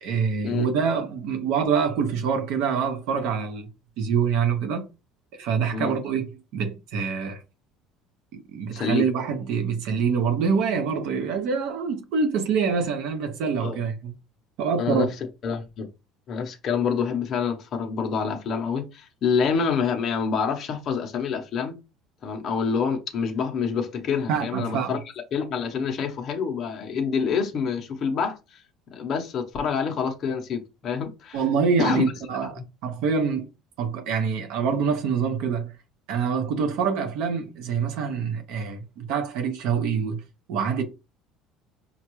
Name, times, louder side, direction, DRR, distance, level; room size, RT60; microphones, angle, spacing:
voice 1, 0.0-3.7 4.0-4.9 5.4-7.4 8.3-14.1 14.6-15.1 24.3-24.9 31.3-33.5 33.8-35.7 36.1-40.2 40.5-40.8, right 6 dB, 60° right, 0.8 m, -25 dB
voice 2, 8.7-9.1 13.6-13.8 14.8-15.1 15.4-15.9 16.3-21.8 22.2-25.0 25.3-28.6 28.9-31.4 31.8-32.0, left 6 dB, 30° left, 0.7 m, -27 dB
5.3 x 2.3 x 3.0 m
cardioid pair, 175°, 0 cm